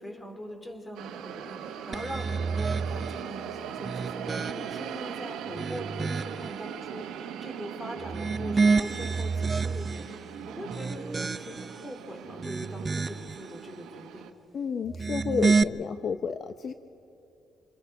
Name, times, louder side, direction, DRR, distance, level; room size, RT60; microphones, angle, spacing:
voice 1, 0.0-14.3, equal, 15° left, 5 dB, 2.9 m, -42 dB
sound 1, 1.0-14.3, right 8 dB, 90° right, 1.1 m, -40 dB
sound 2, 1.9-3.2 3.8-4.9 5.4-6.5 8.0-10.1 10.6-11.8 12.3-13.4 14.8-15.6, right 4 dB, 30° right, 0.4 m, -29 dB
voice 2, 14.5-16.7, left 6 dB, 55° left, 9 dB, 0.6 m, -31 dB
28.0 x 21.0 x 4.9 m, 2.7 s
cardioid pair, 90°, 0 cm